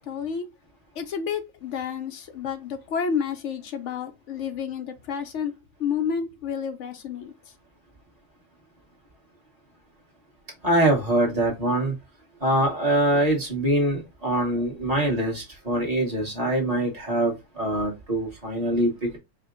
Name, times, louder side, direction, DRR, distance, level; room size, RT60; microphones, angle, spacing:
voice 1, 0.1-0.5 0.9-5.5 5.8-7.3, left 7 dB, 85° left, 1.1 m, -30 dB
voice 2, 10.6-11.9 12.4-19.2, right 1 dB, 35° right, 1.5 m, -24 dB
4.9 x 2.2 x 3.7 m
omnidirectional pair, 1.2 m